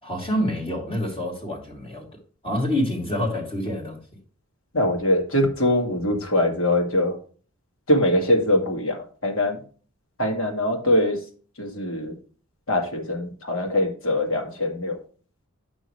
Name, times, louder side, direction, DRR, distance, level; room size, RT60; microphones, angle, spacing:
voice 1, 0.0-2.1 2.4-4.0, left 1 dB, 25° left, 2.7 m, -27 dB
voice 2, 4.7-7.2 7.9-9.6 10.2-11.2 11.6-12.1 12.7-15.0, left 1 dB, 65° left, 2.1 m, -22 dB
8.9 x 6.3 x 3.2 m
head